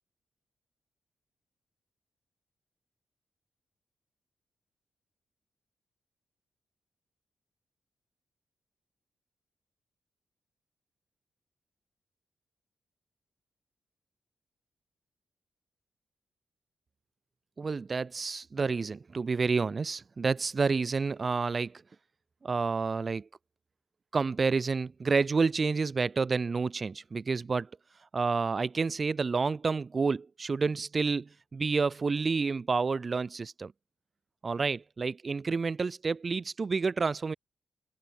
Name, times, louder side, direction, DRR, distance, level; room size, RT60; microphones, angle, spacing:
voice 1, 17.6-21.8 22.4-23.3 24.1-27.7 28.1-33.7 34.4-37.3, right 4 dB, 40° right, 0.4 m, -29 dB
cardioid pair, 95°, 0 cm